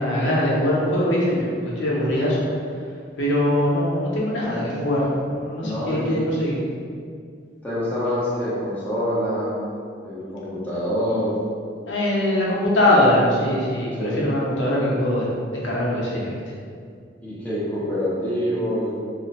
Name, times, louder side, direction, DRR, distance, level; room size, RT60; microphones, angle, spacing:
voice 1, 0.0-2.5 3.2-6.6 11.9-15.3 15.6-16.4, left 1 dB, 85° left, -5 dB, 0.7 m, -22 dB
voice 2, 5.6-6.2 7.6-9.6 10.0-11.3 14.0-14.3 17.2-18.9, equal, 10° left, -9 dB, 0.6 m, -26 dB
2.5 x 2.1 x 4.0 m, 2.2 s
head